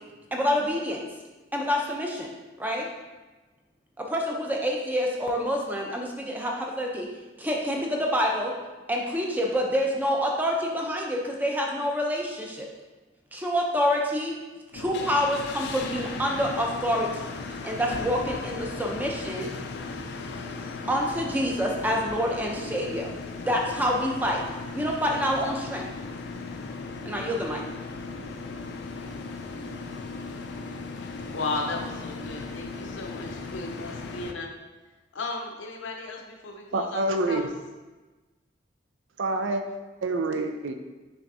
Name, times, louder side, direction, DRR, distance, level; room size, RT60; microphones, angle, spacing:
voice 1, 0.3-1.1 1.5-2.3 2.6-2.9 4.1-7.1 7.4-8.5 8.9-12.7 13.3-14.3 14.7-17.3 17.6-19.5 20.9-23.1 23.5-24.4 24.7-25.9 27.1-27.6, equal, 10° right, 0 dB, 0.5 m, -27 dB
sound 1, 14.7-34.3, left 3 dB, 60° left, 0.4 m, -37 dB
voice 2, 31.3-34.5 35.1-37.5, left 3 dB, 85° left, 2 dB, 0.7 m, -35 dB
voice 3, 36.7-37.5 39.2-39.6 40.0-40.7, right 2 dB, 85° right, 6 dB, 0.4 m, -26 dB
5.7 x 3.4 x 2.7 m, 1.2 s
head